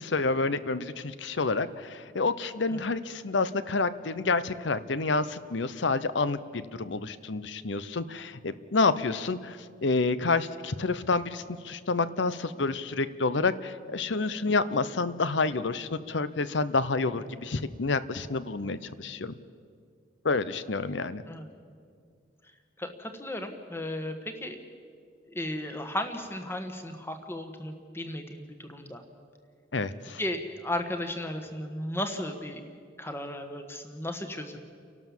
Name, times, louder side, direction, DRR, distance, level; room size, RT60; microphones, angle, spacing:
voice 1, 0.0-19.3 20.2-21.2 29.7-30.2, left 3 dB, 70° left, 14 dB, 0.8 m, -29 dB
voice 2, 22.8-24.6 25.3-29.0 30.2-32.6 33.0-34.6, left 1 dB, 15° left, 6 dB, 1.5 m, -35 dB
30.0 x 12.0 x 7.3 m, 2.2 s
head